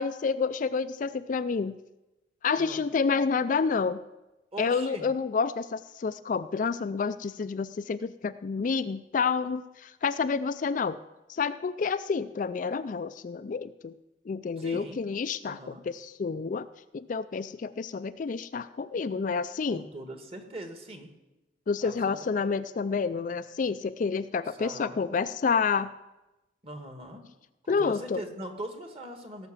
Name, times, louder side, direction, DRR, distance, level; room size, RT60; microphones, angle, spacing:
voice 1, 0.0-1.8 2.4-4.0 4.6-11.0 11.3-13.9 14.3-15.6 15.9-16.7 16.9-19.8 21.7-25.9 27.7-28.2, left 5 dB, 45° left, 12 dB, 0.3 m, -29 dB
voice 2, 4.5-5.1 14.6-15.0 15.4-15.8 19.7-21.1 21.8-22.2 24.4-24.9 26.6-27.2 27.6-29.5, right 1 dB, 30° right, 5 dB, 1.5 m, -41 dB
17.5 x 5.9 x 7.3 m, 1.0 s
head